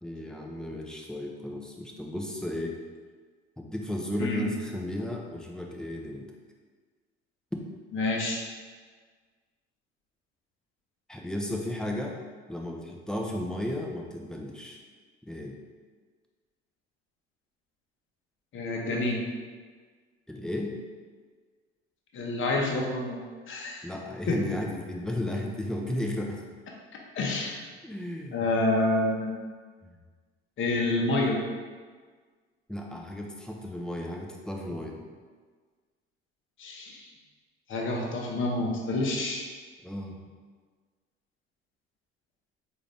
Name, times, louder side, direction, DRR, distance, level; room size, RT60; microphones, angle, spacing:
voice 1, 0.0-2.7 3.6-6.3 11.1-12.2 12.5-14.8 15.3-15.6 20.3-20.7 23.8-26.5 27.8-28.5 29.8-30.0 32.7-35.0 39.8-40.1, left 1 dB, ahead, 0 dB, 0.6 m, -34 dB
voice 2, 7.9-8.4 18.5-19.2 22.1-23.2 23.5-23.9 24.3-24.4 27.1-27.6 28.3-29.4 30.6-31.4 36.6-37.1 37.7-39.5, left 2 dB, 40° left, -1 dB, 0.8 m, -28 dB
3.8 x 2.6 x 3.4 m, 1.5 s
hypercardioid pair, 65°, 31 cm